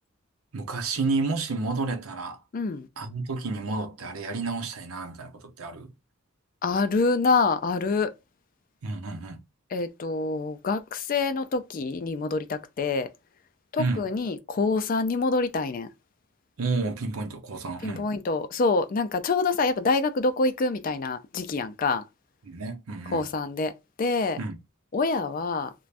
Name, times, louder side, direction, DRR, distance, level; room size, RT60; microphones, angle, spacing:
voice 1, 0.5-2.4 3.0-5.9 8.8-9.4 13.8-14.0 16.6-18.1 22.4-23.2 24.4-24.6, right 3 dB, 85° right, 0.7 m, -30 dB
voice 2, 2.5-2.9 6.6-8.1 9.7-13.1 13.7-15.9 17.8-22.0 23.1-23.7 24.0-24.4 24.9-25.7, left 3 dB, 40° left, 0.3 m, -26 dB
2.5 x 2.2 x 3.2 m
head